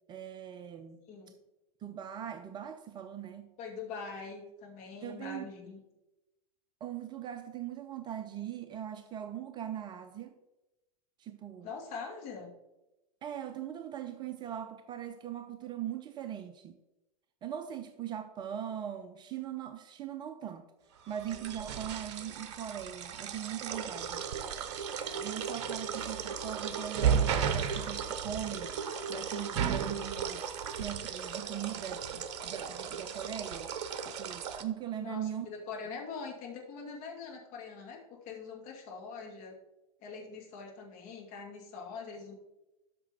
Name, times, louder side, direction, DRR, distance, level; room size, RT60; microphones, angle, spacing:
voice 1, 0.1-1.0 1.8-3.5 5.0-5.5 6.8-10.3 11.2-11.7 13.2-16.8 17.4-20.7 21.1-24.2 25.2-28.7 29.1-30.5 30.8-33.7 34.0-35.5, right 10 dB, 25° right, 0.6 m, -40 dB
voice 2, 3.6-5.8 11.6-12.5 35.0-39.6 40.0-42.4, left 5 dB, 40° left, 2.3 m, -43 dB
sound 1, 21.1-34.6, right 7 dB, 50° right, 0.9 m, -35 dB
12.5 x 5.9 x 3.6 m
figure-of-eight pair, 95°, 20 cm